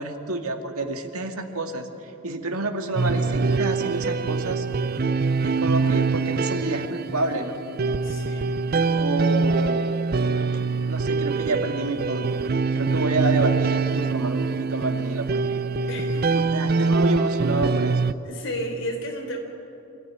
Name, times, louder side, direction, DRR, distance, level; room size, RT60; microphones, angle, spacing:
voice 1, 0.0-1.9 2.2-4.7 5.4-7.6 8.7-9.9 10.4-10.6 10.9-12.4 12.7-15.6 16.5-18.0, right 2 dB, 90° right, 4 dB, 2.0 m, -29 dB
sound 1, 3.0-18.1, right 4 dB, 45° right, 0.4 m, -24 dB
voice 2, 8.0-8.5 15.9-16.4 18.2-19.4, equal, 60° left, 2 dB, 4.0 m, -32 dB
25.5 x 15.0 x 9.9 m, 2.9 s
head